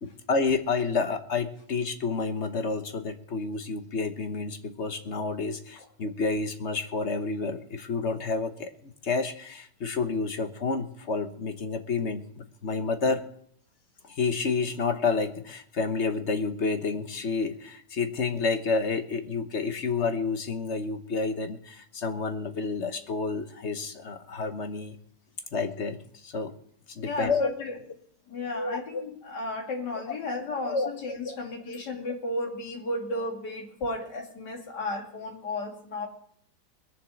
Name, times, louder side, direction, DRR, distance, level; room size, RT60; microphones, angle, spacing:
voice 1, 0.0-8.7 9.0-13.2 14.1-25.0 25.5-26.0 26.2-26.5 26.9-27.5 28.5-29.0 29.9-30.0 30.6-30.9 31.2-31.4, left 4 dB, 45° left, 8 dB, 1.2 m, -29 dB
voice 2, 27.0-27.8 28.3-36.1, left 2 dB, 70° left, 2 dB, 2.8 m, -34 dB
21.0 x 7.4 x 6.3 m, 0.65 s
omnidirectional pair, 1.9 m